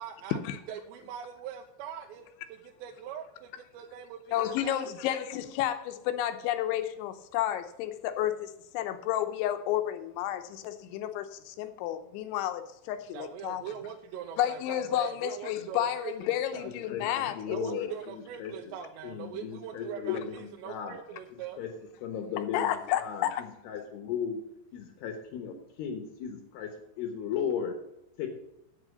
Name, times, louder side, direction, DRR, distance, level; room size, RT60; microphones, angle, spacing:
voice 1, 0.0-0.4 0.7-2.2 2.5-5.0 13.1-16.7 17.5-21.6, right 8 dB, 85° right, 2 dB, 2.8 m, -42 dB
voice 2, 4.3-13.6 14.4-17.9 20.1-20.2 22.5-23.4, left 12 dB, 85° left, 9 dB, 3.2 m, -31 dB
voice 3, 16.9-18.5 19.0-21.0 21.6-21.7 22.0-24.4 24.7-27.8 28.2-28.3, left 7 dB, 70° left, 4 dB, 3.1 m, -36 dB
8.0 x 7.6 x 6.4 m, 0.85 s
omnidirectional pair, 5.3 m